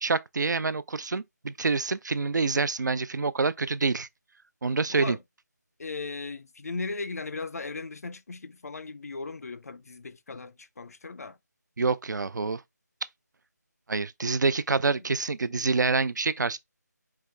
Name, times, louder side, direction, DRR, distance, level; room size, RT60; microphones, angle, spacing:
voice 1, 0.0-4.1 4.6-5.2 11.8-12.6 13.9-16.6, right 4 dB, 80° right, 0.4 m, -27 dB
voice 2, 4.9-5.2 5.8-11.4, left 3 dB, 60° left, 0.4 m, -37 dB
4.7 x 2.0 x 3.2 m
figure-of-eight pair, 165°, 10 cm